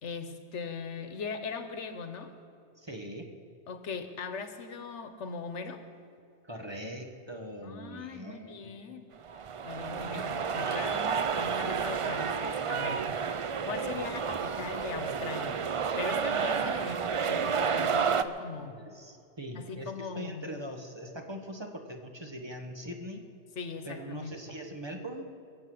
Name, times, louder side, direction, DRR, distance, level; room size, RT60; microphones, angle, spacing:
voice 1, 0.0-2.3 3.7-5.8 7.6-9.1 9.6-13.0 13.6-15.6 16.0-18.8 19.5-20.5 23.6-24.6, left 5 dB, 85° left, 8 dB, 1.4 m, -40 dB
voice 2, 2.8-3.3 6.4-8.9 9.6-10.3 13.8-13.9 18.5-23.3 23.8-25.2, equal, 25° right, 3 dB, 1.3 m, -42 dB
sound 1, 9.2-18.2, right 6 dB, 50° right, 0.4 m, -30 dB
23.0 x 7.7 x 7.8 m, 2.5 s
omnidirectional pair, 1.2 m